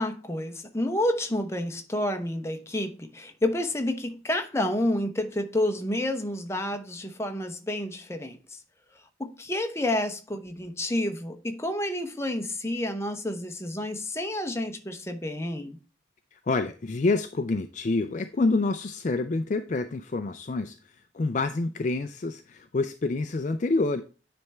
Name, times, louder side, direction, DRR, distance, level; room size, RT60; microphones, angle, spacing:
voice 1, 0.0-8.6 9.2-15.8, left 1 dB, 15° left, 0.9 m, -29 dB
voice 2, 16.3-24.0, left 3 dB, 40° left, 0.4 m, -27 dB
9.7 x 3.5 x 4.2 m
head